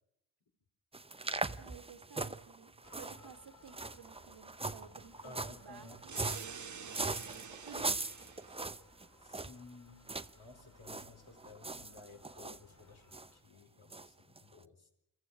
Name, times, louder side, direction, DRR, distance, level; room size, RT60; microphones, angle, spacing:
sound 1, 0.9-9.6 10.1-10.3 10.6-11.1 11.4-12.6 13.1-13.3 13.9-14.1 14.4-14.5, right 3 dB, 15° right, 0.7 m, -40 dB
voice 1, 1.6-8.0 8.4-8.8, right 7 dB, 60° right, 7 dB, 1.8 m, -55 dB
sound 2, 2.8-13.4, left 3 dB, 40° left, 5.2 m, -64 dB
voice 2, 5.2-6.0 9.2-14.9, left 3 dB, 60° left, 3 dB, 4.2 m, -55 dB
sound 3, 6.1-8.6, right 7 dB, 40° right, 1.0 m, -48 dB
23.5 x 14.5 x 8.3 m, 0.79 s
cardioid pair, 50°, 44 cm